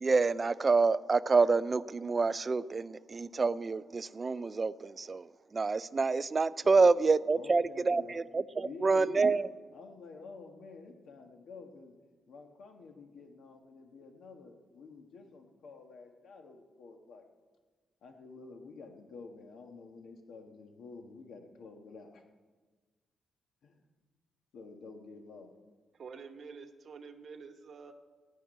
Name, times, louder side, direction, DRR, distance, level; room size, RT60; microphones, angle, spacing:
voice 1, 0.0-9.5, right 4 dB, 25° right, 0.3 m, -27 dB
voice 2, 6.6-7.0 7.3-8.2 8.5-9.4 9.7-11.9 12.3-17.3 18.0-22.2 23.6-23.8 24.5-25.5, left 4 dB, 65° left, 1.5 m, -49 dB
voice 3, 25.9-27.9, right 5 dB, 45° right, 1.0 m, -48 dB
16.0 x 6.0 x 9.2 m
wide cardioid pair, 175°, 0 cm